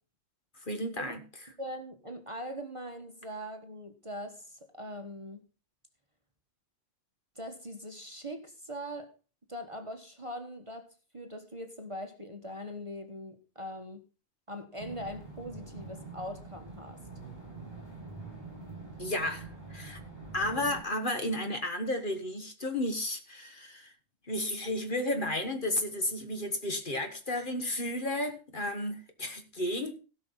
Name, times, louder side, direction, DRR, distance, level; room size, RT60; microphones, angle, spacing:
voice 1, 0.6-1.2 19.0-20.0 20.3-23.9 24.3-29.9, left 1 dB, 40° left, 1.6 m, -33 dB
voice 2, 1.6-5.4 7.3-9.1 9.5-10.9 11.1-14.0 14.5-17.0 20.4-20.7, equal, 25° right, 1.3 m, -41 dB
sound 1, 14.8-20.8, right 3 dB, 20° left, 6.4 m, -45 dB
16.5 x 5.6 x 5.7 m
omnidirectional pair, 1.4 m